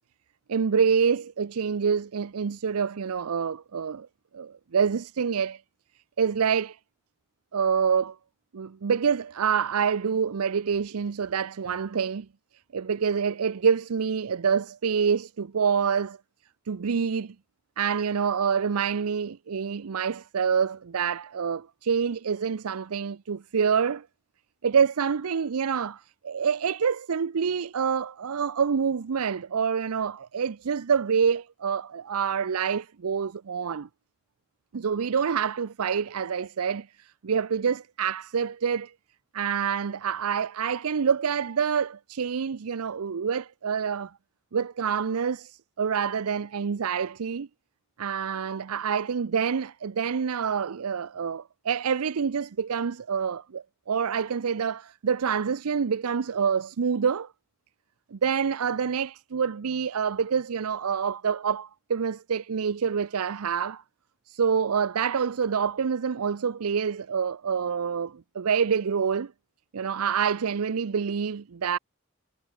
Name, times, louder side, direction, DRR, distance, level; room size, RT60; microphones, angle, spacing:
voice 1, 0.5-4.1 4.3-5.6 6.2-6.8 7.5-8.2 8.5-12.3 12.7-16.2 16.7-17.3 17.8-24.0 24.6-33.9 34.7-38.9 39.3-44.1 44.5-47.5 48.0-57.3 58.1-63.8 64.3-69.3 69.7-71.8, right 6 dB, 85° right, 0.5 m, -27 dB
head